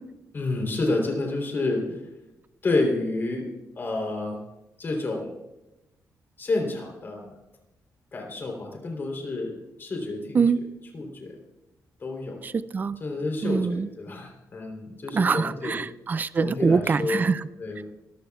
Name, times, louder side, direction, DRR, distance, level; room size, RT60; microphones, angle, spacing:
voice 1, 0.3-2.0 2.6-3.5 3.7-4.4 4.8-5.3 6.4-7.3 8.1-10.5 10.9-11.4 12.0-12.4 13.0-15.8 16.3-17.2 17.6-17.8, left 2 dB, 35° left, 1 dB, 3.5 m, -29 dB
voice 2, 12.4-13.0 13.4-13.9 15.1-17.5, right 5 dB, 30° right, 15 dB, 0.4 m, -24 dB
24.0 x 15.0 x 2.4 m, 0.96 s
wide cardioid pair, 160°, 6 cm